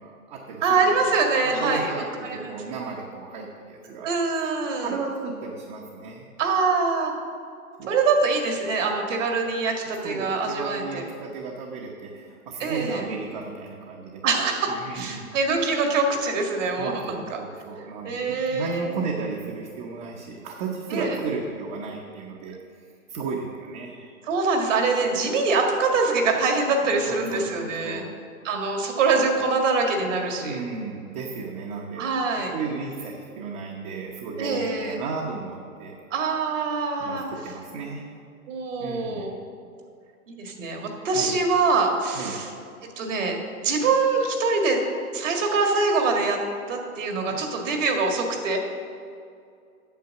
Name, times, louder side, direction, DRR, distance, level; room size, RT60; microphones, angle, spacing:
voice 1, 0.0-1.0 1.4-4.1 4.8-6.3 7.8-7.9 10.0-15.3 16.8-22.6 23.1-24.1 26.8-28.1 30.4-32.1 32.5-36.0 37.0-38.1 38.8-39.3 41.1-41.3 42.1-42.4, right 4 dB, 35° right, -1 dB, 1.1 m, -34 dB
voice 2, 0.6-2.5 4.0-4.9 6.4-7.1 7.9-11.0 12.6-13.1 14.2-17.4 18.0-19.0 20.9-21.2 24.3-28.0 28.4-30.6 32.0-32.5 34.4-35.0 36.1-37.3 38.5-39.3 40.3-42.5 43.0-44.8 45.1-46.4 46.7-48.6, right 4 dB, 60° right, 3 dB, 2.0 m, -24 dB
9.3 x 6.9 x 6.5 m, 2.3 s
hypercardioid pair, 135°, 43 cm